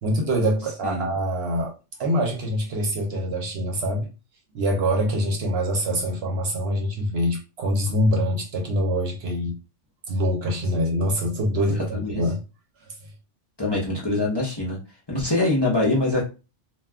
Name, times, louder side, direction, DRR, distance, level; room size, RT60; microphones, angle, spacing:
voice 1, 0.0-1.7 2.0-4.1 4.5-9.6 10.1-12.4, equal, 65° right, 0.9 m, -24 dB
voice 2, 11.6-12.2 13.6-14.8 15.1-16.3, left 2 dB, 25° left, 0.7 m, -24 dB
2.4 x 2.2 x 3.4 m
omnidirectional pair, 1.2 m